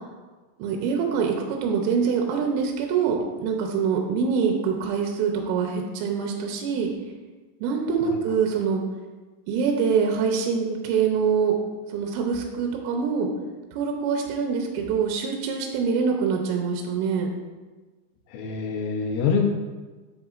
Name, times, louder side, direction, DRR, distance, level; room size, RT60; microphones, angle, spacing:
voice 1, 0.6-6.9 7.6-8.8 9.5-11.5 11.9-13.3 13.7-17.3, right 6 dB, 85° right, 2 dB, 3.2 m, -24 dB
voice 2, 18.3-19.5, left 6 dB, 85° left, 1 dB, 3.5 m, -25 dB
7.9 x 6.6 x 2.4 m, 1.3 s
omnidirectional pair, 5.9 m